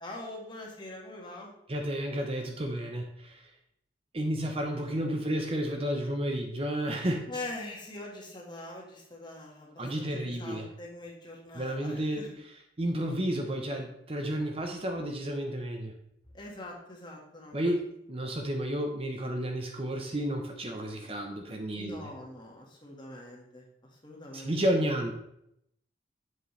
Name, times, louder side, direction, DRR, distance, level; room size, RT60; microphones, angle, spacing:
voice 1, 0.0-1.5 7.3-12.3 16.3-17.7 21.7-23.7 24.0-24.6, left 2 dB, 25° left, -2 dB, 1.8 m, -43 dB
voice 2, 1.7-3.3 4.1-7.2 9.8-10.7 11.5-12.3 12.8-15.9 17.5-17.8 18.1-22.0 24.3-25.1, right 1 dB, 35° right, 3 dB, 0.8 m, -31 dB
7.7 x 7.7 x 3.3 m, 0.76 s
head